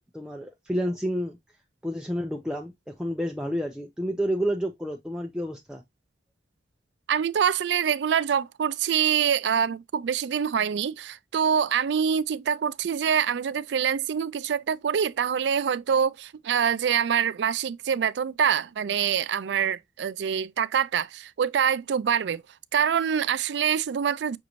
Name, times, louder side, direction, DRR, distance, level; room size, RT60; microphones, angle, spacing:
voice 1, 0.0-1.4 1.8-5.8, equal, 5° right, 0.4 m, -30 dB
voice 2, 7.1-22.4 22.7-24.4, right 8 dB, 85° right, 0.4 m, -25 dB
6.1 x 2.6 x 2.9 m
head